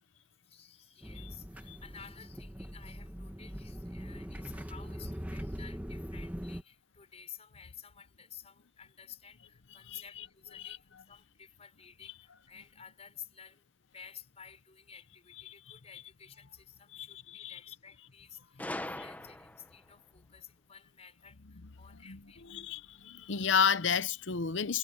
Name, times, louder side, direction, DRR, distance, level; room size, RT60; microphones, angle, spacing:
voice 1, 0.0-13.6 13.9-22.4, left 8 dB, 35° left, 5.6 m, -53 dB
sound 1, 1.0-6.6, equal, 10° right, 1.4 m, -42 dB
voice 2, 15.5-15.8 16.9-17.6 22.1-22.2 22.5-24.8, left 6 dB, 75° left, 0.8 m, -32 dB
Gunshot gunfire, 18.6-19.8, left 1 dB, 10° left, 0.8 m, -40 dB
head